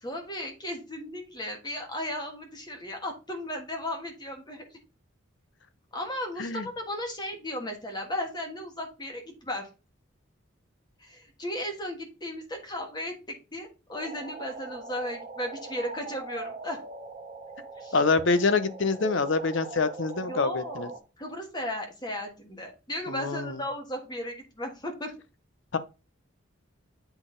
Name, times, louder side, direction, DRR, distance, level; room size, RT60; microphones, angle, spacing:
voice 1, 0.0-4.8 5.9-9.7 11.0-16.8 17.8-18.0 20.2-25.1, left 1 dB, 20° left, 1.3 m, -35 dB
sound 1, 14.0-21.0, right 3 dB, 35° right, 1.2 m, -41 dB
voice 2, 17.9-20.9 23.1-23.6 25.7-25.8, left 4 dB, 65° left, 0.7 m, -26 dB
8.0 x 4.0 x 3.8 m
head